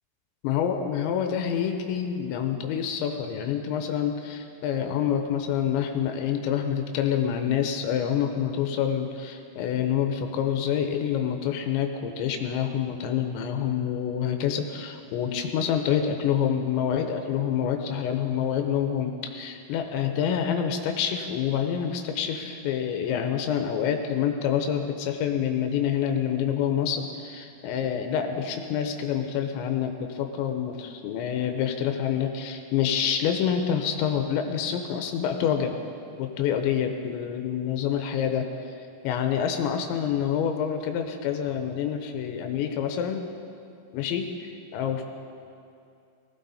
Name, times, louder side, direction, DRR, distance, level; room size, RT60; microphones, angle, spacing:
voice 1, 0.4-35.8 36.2-38.5 39.0-43.2 43.9-45.0, left 8 dB, 85° left, 5 dB, 3.1 m, -27 dB
19.0 x 15.5 x 4.1 m, 2.5 s
omnidirectional pair, 5.2 m